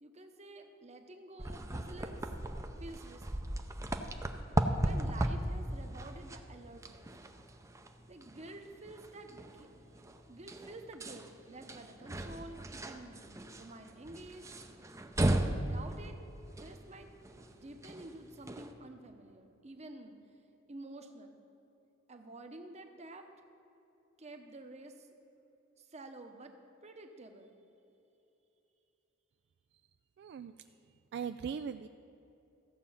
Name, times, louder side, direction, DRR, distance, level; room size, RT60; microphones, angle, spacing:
voice 1, 0.0-2.3 2.8-3.2 4.8-7.1 8.1-9.8 10.3-13.2 13.6-14.5 15.6-16.2 16.6-17.1 17.5-20.2 20.7-21.3 22.1-23.3 24.2-25.1 25.8-26.5 26.8-27.5, right 2 dB, 35° right, 5 dB, 0.9 m, -50 dB
sound 1, 1.4-18.7, right 1 dB, 15° right, 0.6 m, -37 dB
voice 2, 30.2-30.5 31.1-31.9, right 7 dB, 60° right, 10 dB, 0.3 m, -39 dB
15.0 x 7.4 x 5.6 m, 2.9 s
head